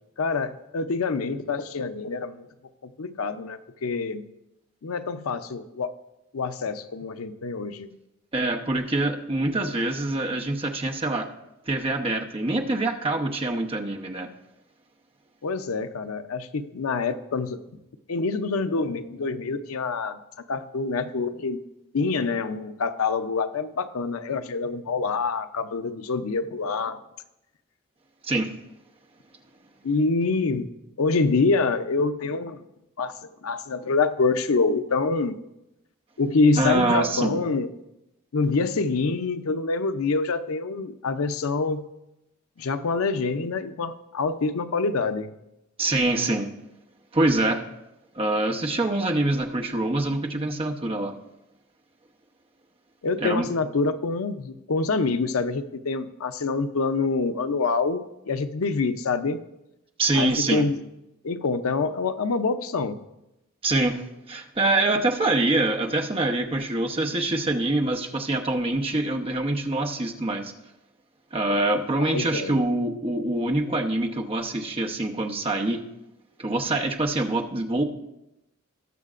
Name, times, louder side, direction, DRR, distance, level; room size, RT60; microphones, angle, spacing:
voice 1, 0.2-2.5 2.8-4.2 4.8-5.9 6.3-7.9 15.4-17.8 18.1-20.2 20.5-21.6 21.9-27.0 29.8-30.7 31.0-32.6 33.0-35.4 36.2-37.7 38.3-41.9 42.6-45.3 53.0-59.4 60.2-60.8 61.2-63.0 72.0-72.6, left 4 dB, 85° left, 11 dB, 0.6 m, -26 dB
voice 2, 8.3-11.3 11.7-14.3 28.2-28.5 36.5-37.4 45.8-46.5 47.1-47.6 48.1-51.1 53.2-53.5 60.0-60.6 63.6-70.5 71.3-75.8 76.4-77.8, right 2 dB, 25° right, 2 dB, 0.8 m, -25 dB
19.0 x 6.5 x 2.5 m, 0.89 s
head